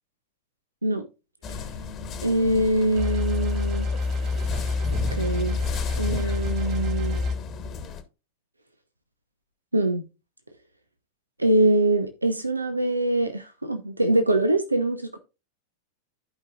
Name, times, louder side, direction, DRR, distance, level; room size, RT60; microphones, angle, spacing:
sound 1, 1.4-8.0, left 4 dB, 30° left, 1.4 m, -35 dB
voice 1, 2.2-3.9 5.1-5.6 6.0-7.2 9.7-10.0 11.4-15.2, right 1 dB, 85° right, 0.9 m, -23 dB
sound 2, 3.0-7.3, left 3 dB, 40° right, 2.1 m, -27 dB
15.0 x 5.3 x 2.4 m
figure-of-eight pair, 90°, 0 cm